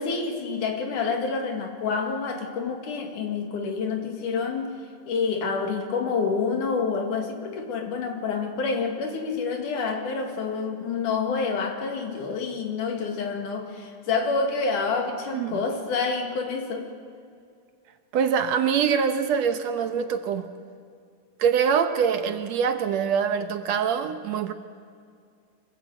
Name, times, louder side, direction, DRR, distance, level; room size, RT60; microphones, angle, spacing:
voice 1, 0.0-4.8 5.1-16.9, left 4 dB, 85° left, 3 dB, 3.4 m, -28 dB
voice 2, 18.1-20.5 21.4-24.5, right 7 dB, 70° right, 7 dB, 1.9 m, -24 dB
24.5 x 16.0 x 8.0 m, 2.3 s
omnidirectional pair, 3.5 m